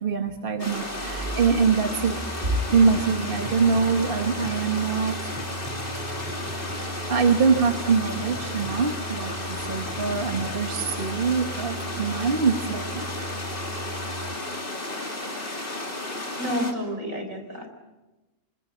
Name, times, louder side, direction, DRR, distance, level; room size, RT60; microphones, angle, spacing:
voice 1, 0.0-2.2 2.4-5.3 7.1-13.0, right 5 dB, 40° right, 6 dB, 1.4 m, -24 dB
sound 1, 0.6-16.7, left 2 dB, 35° left, 3.3 m, -33 dB
sound 2, 0.7-14.4, right 1 dB, 15° right, 0.9 m, -38 dB
voice 2, 16.4-17.7, equal, 65° right, 6 dB, 4.5 m, -30 dB
27.5 x 25.5 x 7.1 m, 1.1 s
omnidirectional pair, 1.5 m